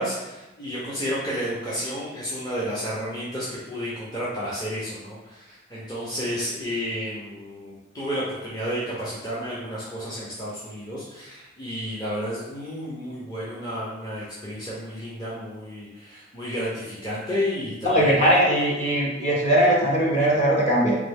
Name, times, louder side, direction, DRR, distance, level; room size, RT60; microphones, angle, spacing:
voice 1, 0.0-18.3, equal, 20° left, -8 dB, 0.7 m, -31 dB
voice 2, 17.8-21.0, right 1 dB, 40° left, -4 dB, 1.1 m, -20 dB
3.8 x 3.2 x 3.5 m, 1.0 s
head